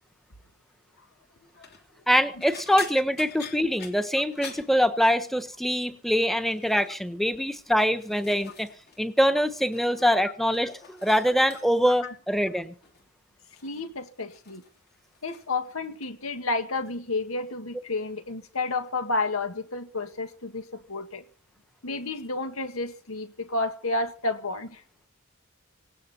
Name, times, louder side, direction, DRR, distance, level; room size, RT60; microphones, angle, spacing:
sound 1, 1.4-1.8 2.4-5.4 5.7-6.1 6.4-6.9 7.6-9.0 9.3-10.1 10.4-11.9 12.8-13.1 13.5-15.6 15.8-16.4 16.7-17.0 18.2-18.3, left 6 dB, 50° left, 3.2 m, -46 dB
voice 1, 2.1-8.7 9.0-12.7, equal, ahead, 1.2 m, -24 dB
voice 2, 13.6-14.6 15.2-21.2 21.8-24.8, left 3 dB, 85° left, 2.0 m, -31 dB
18.5 x 18.0 x 4.4 m
head